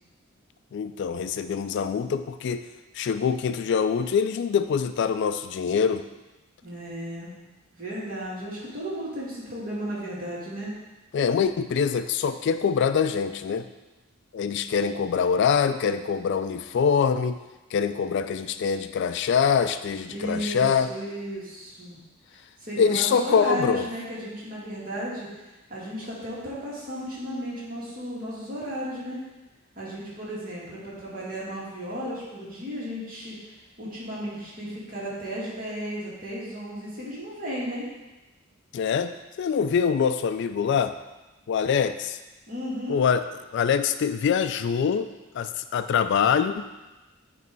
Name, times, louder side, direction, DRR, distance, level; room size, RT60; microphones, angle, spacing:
voice 1, 0.7-2.6 2.9-6.0 11.1-13.7 14.3-17.4 17.7-20.9 22.8-23.9 38.7-40.9 41.5-42.2 42.9-43.2 43.5-45.1 45.3-46.6, left 6 dB, 55° left, 11 dB, 0.3 m, -24 dB
voice 2, 6.6-7.3 7.7-10.7 20.1-22.0 22.6-29.2 29.8-33.4 33.8-37.9 42.5-43.0, equal, 45° right, -6 dB, 2.2 m, -34 dB
9.3 x 3.2 x 5.2 m, 1.1 s
head